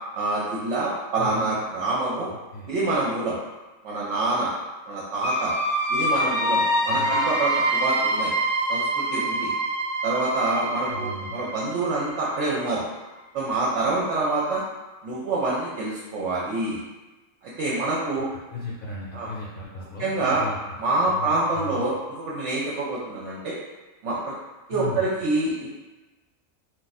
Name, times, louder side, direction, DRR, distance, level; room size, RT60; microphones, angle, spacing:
voice 1, 0.1-2.3 2.7-3.4 3.8-4.5 4.9-5.5 5.9-8.3 8.7-8.8 9.1-9.5 10.0-12.8 13.3-14.6 15.0-16.8 17.4-18.3 19.1-19.3 20.0-20.4 20.8-23.5 24.0-24.3 24.7-25.7, right 2 dB, 70° right, -6 dB, 0.8 m, -26 dB
sound 1, 5.2-12.8, right 1 dB, 15° left, 0.5 m, -25 dB
voice 2, 6.9-7.2 10.9-11.4 18.5-20.6 21.0-21.8 24.7-25.1, left 1 dB, 50° left, -7 dB, 0.7 m, -36 dB
2.4 x 2.3 x 4.0 m, 1.1 s
omnidirectional pair, 1.4 m